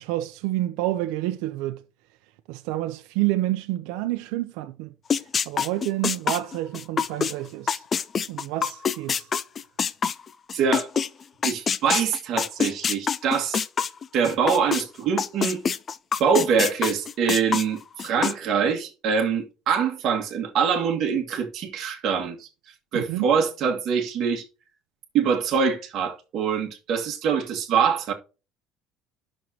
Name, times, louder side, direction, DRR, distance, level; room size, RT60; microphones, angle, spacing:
voice 1, 0.0-1.8 2.5-4.9 5.5-7.8 8.3-9.3 22.9-23.2, right 15 dB, 90° right, 0.7 m, -28 dB
sound 1, 5.1-11.1 11.4-14.8 15.2-18.3, left 6 dB, 25° left, 0.3 m, -25 dB
voice 2, 10.5-11.0 11.4-13.6 14.1-15.6 16.2-22.5 22.9-24.4 25.1-28.1, right 6 dB, 40° right, 1.7 m, -24 dB
11.0 x 6.4 x 2.8 m
cardioid pair, 180°, 0 cm